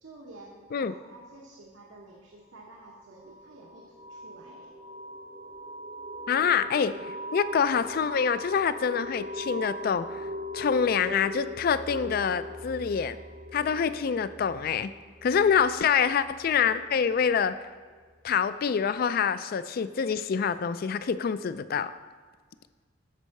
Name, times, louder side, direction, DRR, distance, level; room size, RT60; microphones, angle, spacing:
voice 1, 0.0-4.8 15.7-15.9, right 2 dB, 80° right, -2 dB, 1.1 m, -50 dB
sound 1, 2.8-17.2, equal, 30° right, 0.6 m, -40 dB
voice 2, 6.3-6.9 7.3-10.1 10.5-13.2 13.5-14.9 15.2-17.6 18.2-21.9, left 7 dB, 50° left, 14 dB, 0.3 m, -26 dB
8.2 x 4.7 x 6.4 m, 1.5 s
head